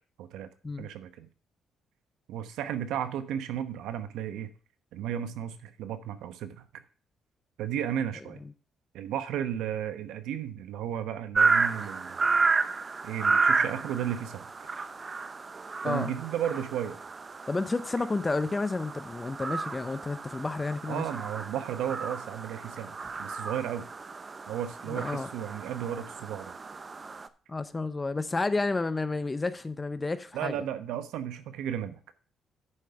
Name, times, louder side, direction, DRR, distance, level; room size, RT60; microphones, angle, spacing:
voice 1, 0.2-0.5 0.8-1.3 2.3-4.5 4.9-6.8 7.6-8.4 8.9-12.5 13.0-14.5 15.8-17.0 20.9-23.9 24.5-26.6 30.3-32.0, right 10 dB, 90° right, 0.9 m, -34 dB
sound 1, 11.3-27.3, right 4 dB, 35° right, 0.7 m, -31 dB
voice 2, 17.5-21.0 24.9-25.3 27.5-30.5, left 3 dB, 25° left, 0.6 m, -31 dB
9.9 x 5.0 x 5.8 m
cardioid pair, 90°, 0 cm